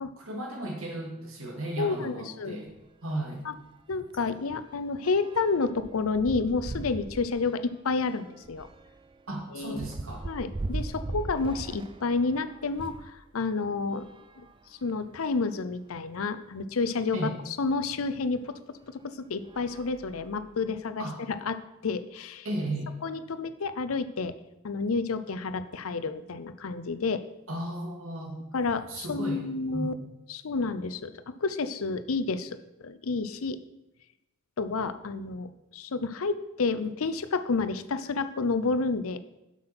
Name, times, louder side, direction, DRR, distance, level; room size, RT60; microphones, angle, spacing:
voice 1, 0.2-2.7 3.0-3.5 9.3-10.3 17.1-17.4 21.0-21.2 22.4-22.9 27.5-28.4 28.9-29.4 29.7-30.0, right 1 dB, 80° right, 0 dB, 2.2 m, -35 dB
voice 2, 1.8-2.6 3.5-3.6 3.9-8.7 9.5-9.8 10.3-14.1 14.4-14.5 14.7-17.2 17.5-21.6 21.8-22.5 23.0-24.3 24.6-27.2 28.5-29.9 30.3-32.6 32.8-33.6 34.6-39.2, left 4 dB, 90° left, 12 dB, 0.6 m, -30 dB
sound 1, 2.7-2.9 3.2-3.3 3.7-13.1 13.9-15.2 15.9-16.0 16.2-16.3 18.0-18.2 18.8-19.0 19.4-20.7, right 2 dB, 25° right, 0.4 m, -40 dB
7.7 x 6.2 x 5.8 m, 0.93 s
head